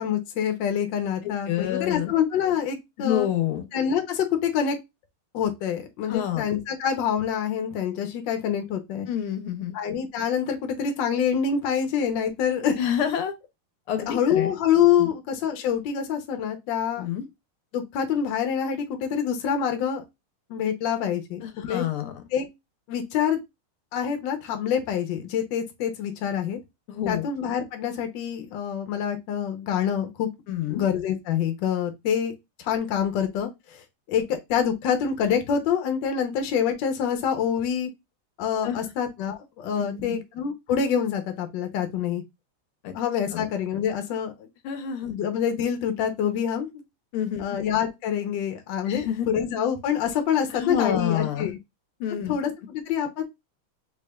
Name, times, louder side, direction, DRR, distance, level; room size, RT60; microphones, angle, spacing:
voice 1, 0.0-3.3 3.7-4.7 5.3-9.1 9.7-12.8 14.1-17.1 17.7-20.0 20.5-21.4 21.7-21.8 22.3-22.5 22.9-23.4 23.9-26.6 27.1-30.3 30.7-32.3 32.6-37.9 38.4-42.2 42.9-44.5 45.1-46.7 47.4-51.5 52.3-53.2, left 8 dB, 65° left, 1.3 m, -26 dB
voice 2, 1.2-2.1 3.0-3.7 6.1-6.5 9.1-9.7 12.8-13.3 13.9-14.5 15.0-15.1 17.0-17.3 21.4-22.2 26.9-27.3 30.5-30.8 38.6-38.8 39.8-40.2 42.8-42.9 43.3-43.5 44.6-45.1 47.1-47.6 48.9-49.3 50.5-51.5 52.0-52.4, left 10 dB, 90° left, 1.6 m, -28 dB
4.1 x 3.2 x 2.2 m
omnidirectional pair, 2.4 m